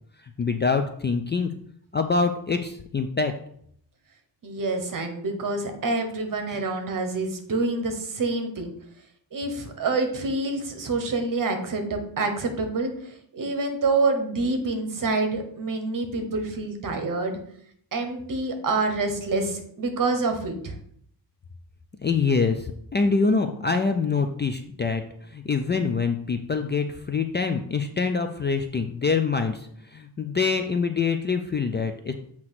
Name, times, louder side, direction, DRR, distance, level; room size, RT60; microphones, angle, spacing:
voice 1, 0.2-1.5 1.9-3.3 6.5-6.6 22.0-32.1, left 4 dB, 25° left, 6 dB, 0.3 m, -25 dB
voice 2, 4.4-8.7 9.3-17.4 17.9-20.7, right 3 dB, 45° right, 6 dB, 1.2 m, -27 dB
7.7 x 3.0 x 5.8 m, 0.65 s
wide cardioid pair, 150°, 43 cm